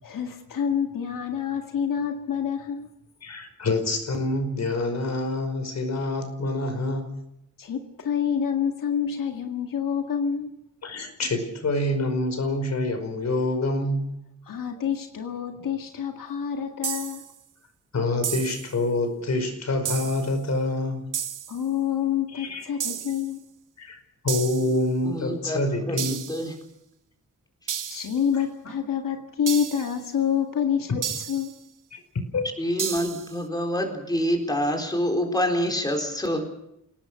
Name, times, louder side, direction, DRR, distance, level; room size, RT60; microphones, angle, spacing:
voice 1, 0.0-2.9 7.6-10.5 14.4-17.3 21.5-23.4 27.9-31.5, left 8 dB, 85° left, 4 dB, 2.0 m, -27 dB
voice 2, 3.2-7.2 10.8-14.1 17.9-21.1 22.4-22.6 23.8-24.0 24.2-26.3 31.9-32.0 32.3-32.5, left 2 dB, 55° left, 7 dB, 5.2 m, -26 dB
sound 1, 16.8-17.3 18.2-18.8 19.9-20.3 21.1-21.6 22.8-23.3 24.3-24.8 26.0-26.5 27.7-28.2 29.5-30.0 31.0-31.6 32.8-33.4, right 8 dB, 75° right, 1.3 m, -32 dB
voice 3, 25.0-25.6 25.9-26.5 32.6-36.4, equal, 10° left, 3 dB, 4.2 m, -26 dB
28.5 x 18.5 x 6.6 m, 0.81 s
wide cardioid pair, 175°, 32 cm